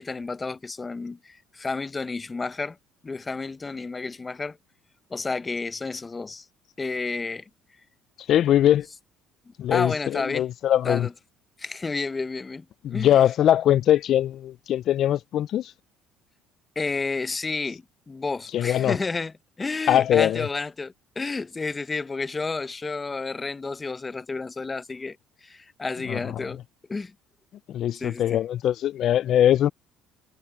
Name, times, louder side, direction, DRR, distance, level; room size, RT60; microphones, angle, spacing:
voice 1, 0.0-2.8 3.0-4.6 5.1-6.5 6.8-7.5 9.5-10.5 10.8-11.1 11.6-13.2 16.8-26.6 26.9-27.1 28.0-28.4, left 3 dB, 25° left, 0.8 m, -31 dB
voice 2, 8.3-8.9 9.6-11.1 12.8-15.7 18.5-19.0 19.9-20.5 26.0-26.5 27.7-29.7, left 11 dB, 60° left, 0.4 m, -22 dB
supercardioid pair, 85°, 0 cm